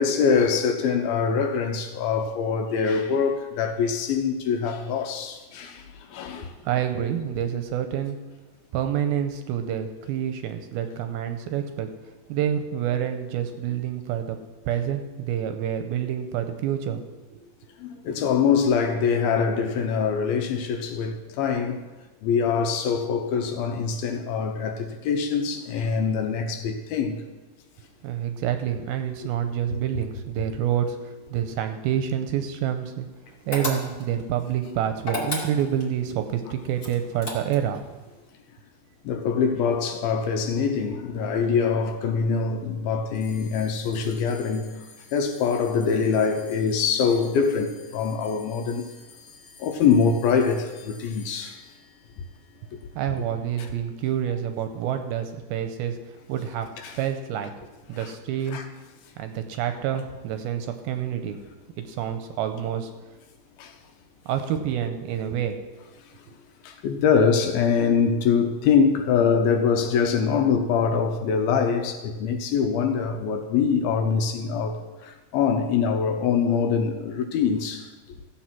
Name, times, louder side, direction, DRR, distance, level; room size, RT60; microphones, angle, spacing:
voice 1, 0.0-6.5 17.8-21.8 22.2-27.2 39.0-44.7 45.1-48.9 49.6-51.6 53.6-53.7 56.8-57.0 58.0-58.1 58.5-58.7 63.6-63.7 66.6-77.9, left 6 dB, 75° left, 2.5 m, -24 dB
voice 2, 6.6-8.2 8.7-11.9 12.3-14.4 14.7-17.0 17.3-17.4 28.0-33.1 33.5-37.8 53.0-56.0 56.3-56.7 57.0-57.5 57.9-58.6 59.2-61.4 61.8-62.9 64.3-65.6 66.3-66.4, right 9 dB, 80° right, 2.4 m, -28 dB
sound 1, 33.5-34.2 35.0-35.9 36.8-37.8, left 2 dB, 30° left, 1.7 m, -31 dB
sound 2, 43.1-53.8, left 5 dB, 50° left, 2.1 m, -52 dB
14.5 x 8.0 x 6.1 m
omnidirectional pair, 4.7 m